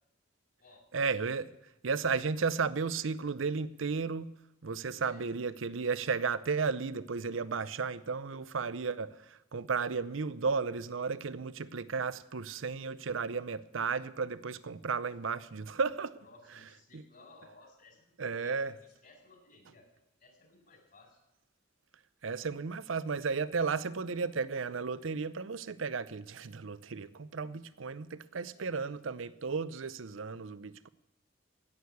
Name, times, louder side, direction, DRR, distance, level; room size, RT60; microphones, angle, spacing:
voice 1, 0.9-1.5 1.8-4.3 4.6-16.2 16.9-17.0 18.2-18.8 22.2-30.9, right 5 dB, 90° right, 0.6 m, -34 dB
voice 2, 4.9-5.3 16.2-19.9 20.2-21.2 28.5-28.8, left 2 dB, 50° left, 4.6 m, -59 dB
16.0 x 6.7 x 9.5 m
head